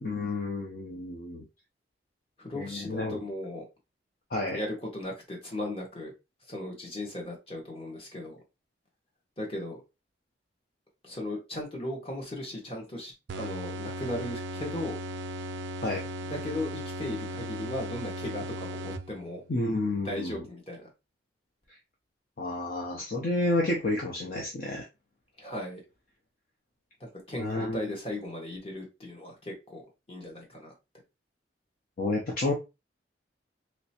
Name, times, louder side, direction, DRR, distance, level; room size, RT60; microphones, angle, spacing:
voice 1, 0.0-1.4 2.5-3.2 4.3-4.6 15.8-16.0 19.5-20.5 22.4-24.9 27.4-27.8 32.0-32.5, left 2 dB, 50° left, -1 dB, 0.6 m, -30 dB
voice 2, 2.4-3.6 4.5-6.1 6.5-8.4 9.4-9.8 11.0-15.0 16.2-19.4 20.0-20.9 25.4-25.8 27.0-29.8 30.1-30.7, left 1 dB, 30° left, -1 dB, 1.2 m, -37 dB
sound 1, 13.3-19.4, equal, 90° right, 0.4 m, -37 dB
3.2 x 2.9 x 2.8 m, 0.26 s
head